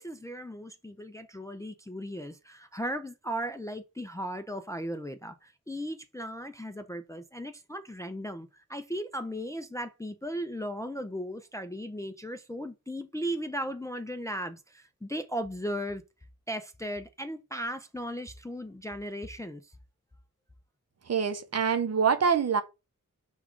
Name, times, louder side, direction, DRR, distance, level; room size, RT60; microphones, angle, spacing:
voice 1, 0.0-16.0 16.5-19.7, equal, 10° left, 0.4 m, -36 dB
voice 2, 21.1-22.6, right 6 dB, 50° right, 0.6 m, -25 dB
6.0 x 2.3 x 3.6 m
wide cardioid pair, 100°, 32 cm